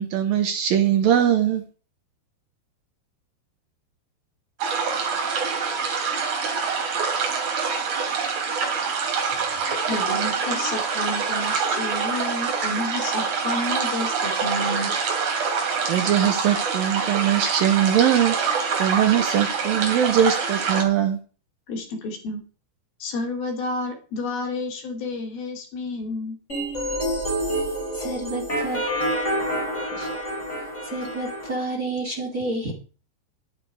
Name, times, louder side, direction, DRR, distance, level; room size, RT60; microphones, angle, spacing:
voice 1, 0.0-1.6 15.4-15.6 15.9-21.2, right 9 dB, 70° right, 7 dB, 2.5 m, -21 dB
sound 1, 4.6-20.8, right 5 dB, 50° right, 3.9 m, -25 dB
voice 2, 9.4-14.9 21.7-22.4 23.0-26.4, left 2 dB, 65° left, 2 dB, 4.6 m, -30 dB
sound 2, 26.5-31.5, equal, 15° left, 4.6 m, -27 dB
voice 3, 27.9-28.8 29.9-30.1 30.6-32.7, right 2 dB, 25° right, 2 dB, 2.4 m, -30 dB
12.0 x 9.9 x 4.8 m, 0.36 s
omnidirectional pair, 4.9 m